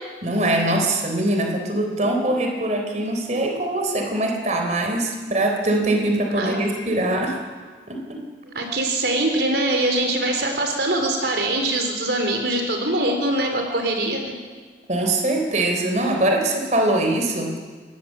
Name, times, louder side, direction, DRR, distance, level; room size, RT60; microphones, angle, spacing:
voice 1, 0.2-7.4 7.9-8.2 14.9-17.6, right 1 dB, 40° right, 2 dB, 3.8 m, -22 dB
voice 2, 8.5-14.2, right 1 dB, 70° right, 4 dB, 3.7 m, -23 dB
26.0 x 20.5 x 7.6 m, 1.5 s
head